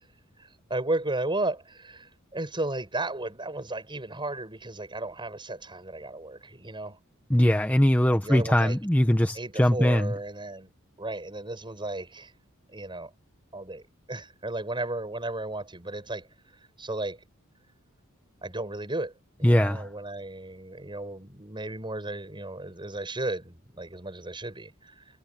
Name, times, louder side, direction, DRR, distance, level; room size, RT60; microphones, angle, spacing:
voice 1, 0.7-7.0 8.1-8.8 9.3-10.7 11.0-12.3 12.7-13.1 13.5-13.8 14.1-16.3 16.8-17.2 18.4-19.1 19.4-24.9, right 2 dB, 25° right, 7.9 m, -34 dB
voice 2, 7.3-10.1 19.4-19.9, left 1 dB, 10° left, 1.0 m, -21 dB
head